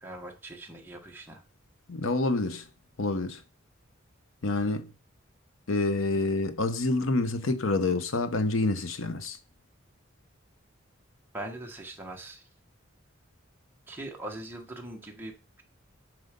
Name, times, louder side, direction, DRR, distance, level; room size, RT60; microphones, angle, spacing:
voice 1, 0.0-1.4 11.3-12.4 13.9-15.6, right 1 dB, 10° right, 1.4 m, -41 dB
voice 2, 1.9-2.7 3.0-3.4 4.4-4.9 5.7-9.4, left 2 dB, 80° left, 0.9 m, -27 dB
7.9 x 4.8 x 5.2 m
head